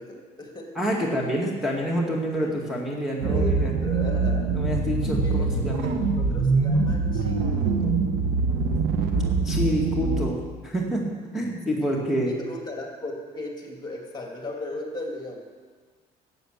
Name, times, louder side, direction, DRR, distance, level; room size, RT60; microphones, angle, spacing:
voice 1, 0.0-1.4 2.3-2.7 3.2-4.5 5.2-5.9 6.2-7.9 11.8-12.0 12.3-15.4, left 2 dB, 25° left, 1 dB, 2.5 m, -37 dB
voice 2, 0.8-3.7 4.5-5.8 9.4-11.1 11.3-12.3, equal, ahead, -2 dB, 2.1 m, -27 dB
sound 1, 3.2-10.3, right 4 dB, 80° right, 1.3 m, -24 dB
12.0 x 7.8 x 8.1 m, 1.5 s
cardioid pair, 110°, 17 cm